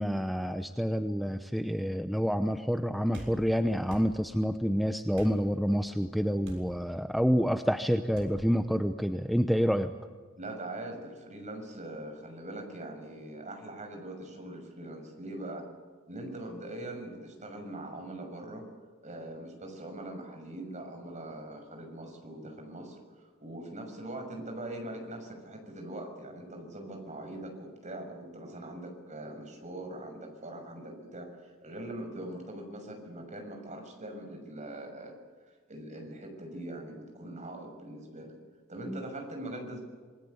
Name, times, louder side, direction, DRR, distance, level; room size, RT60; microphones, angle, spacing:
voice 1, 0.0-9.9 38.9-39.0, equal, ahead, 8 dB, 0.8 m, -28 dB
sound 1, 3.1-3.4 3.9-4.1 5.1-5.4 6.4-6.7 8.1-8.3, right 1 dB, 65° right, 7.1 m, -44 dB
voice 2, 10.4-15.7 16.1-18.6 19.0-23.0 23.4-35.2 35.7-38.3 38.7-39.8, right 1 dB, 35° right, 3 dB, 6.4 m, -42 dB
27.5 x 20.5 x 8.2 m, 1.5 s
head